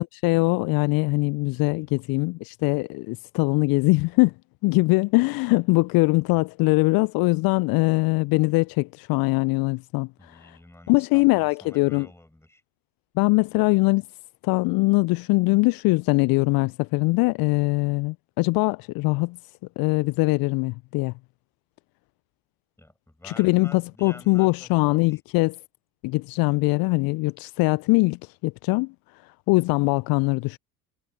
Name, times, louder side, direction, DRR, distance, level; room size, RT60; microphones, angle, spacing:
voice 1, 0.0-4.3 4.6-10.6 10.9-12.1 13.2-14.0 14.4-19.4 19.8-21.1 23.2-25.6 26.0-28.9 29.5-30.6, left 25 dB, 50° left, 0.9 m, -22 dB
voice 2, 10.2-12.6 22.8-25.2, left 1 dB, 5° left, 7.2 m, -49 dB
figure-of-eight pair, 60°, 46 cm